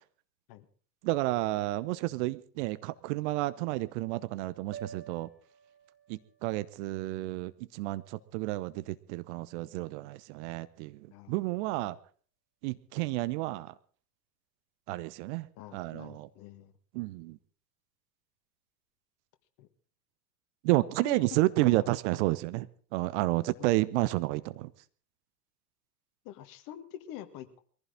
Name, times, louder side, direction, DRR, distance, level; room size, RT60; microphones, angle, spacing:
voice 1, 1.0-5.3 6.1-11.0 11.3-12.0 12.6-13.7 14.9-15.5 15.7-16.3 16.9-17.4 20.6-22.7 22.9-24.7, right 19 dB, 45° right, 16 dB, 0.9 m, -30 dB
sound 1, 4.7-9.0, right 6 dB, 25° right, 7.2 m, -52 dB
voice 2, 11.1-12.0 15.6-16.7 19.6-19.7 21.0-21.2 21.6-21.9 23.6-23.8 26.2-27.6, left 12 dB, 40° left, 10 dB, 2.0 m, -46 dB
22.5 x 15.5 x 3.8 m, 0.44 s
figure-of-eight pair, 85°, 49 cm